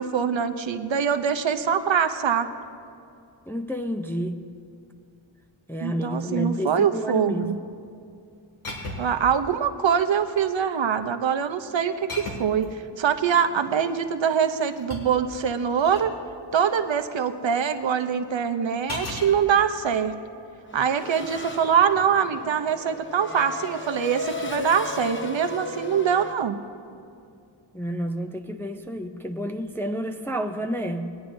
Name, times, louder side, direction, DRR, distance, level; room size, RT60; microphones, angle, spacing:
voice 1, 0.0-2.5 5.8-7.6 9.0-12.1 12.4-16.1 16.5-20.2 20.7-26.6, right 7 dB, 65° right, 8 dB, 0.7 m, -24 dB
voice 2, 3.5-4.4 5.7-7.5 27.7-31.1, equal, 5° left, 4 dB, 0.4 m, -30 dB
sound 1, 8.6-9.3 10.2-10.7 12.1-12.7 14.4-16.1 18.9-19.3 21.3-21.6, left 1 dB, 80° left, 2.2 m, -36 dB
Race car auto racing / Accelerating revving vroom, 20.7-26.3, left 3 dB, 25° left, 0.7 m, -36 dB
20.0 x 10.0 x 2.6 m, 2.5 s
wide cardioid pair, 100°, 49 cm